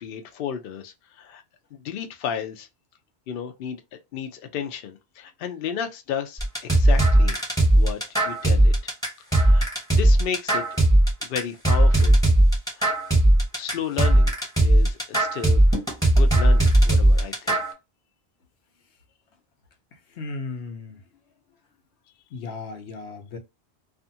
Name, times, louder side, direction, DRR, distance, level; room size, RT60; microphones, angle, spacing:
voice 1, 0.0-1.4 1.7-2.7 3.3-3.8 4.1-7.4 7.8-8.9 9.3-10.6 11.2-12.2 12.7-12.9 13.5-15.8 16.1-17.6, left 8 dB, 65° left, 0.7 m, -33 dB
sound 1, 6.4-17.7, right 1 dB, 5° left, 1.1 m, -18 dB
voice 2, 20.1-21.0 22.3-23.4, left 3 dB, 85° left, 1.0 m, -35 dB
2.5 x 2.4 x 2.6 m
omnidirectional pair, 1.1 m